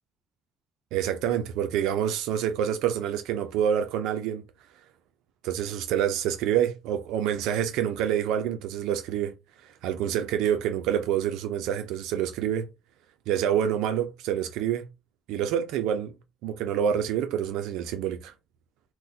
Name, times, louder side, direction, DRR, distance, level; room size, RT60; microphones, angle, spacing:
voice 1, 0.9-4.4 5.4-9.3 9.8-12.7 13.3-14.9 15.3-16.1 16.4-18.3, right 9 dB, 85° right, 0.4 m, -27 dB
3.9 x 2.1 x 2.6 m
cardioid pair, 180°, 0 cm